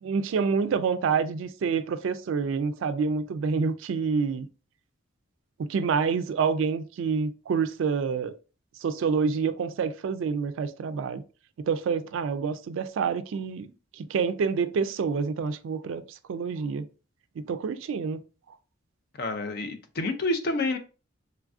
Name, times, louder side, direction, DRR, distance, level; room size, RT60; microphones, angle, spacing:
voice 1, 0.0-4.5 5.6-8.3 8.8-11.2 11.7-13.7 14.0-16.9 17.4-18.2, right 5 dB, 70° right, 0.3 m, -27 dB
voice 2, 19.2-20.8, left 2 dB, 50° left, 0.4 m, -28 dB
3.2 x 2.4 x 2.3 m
head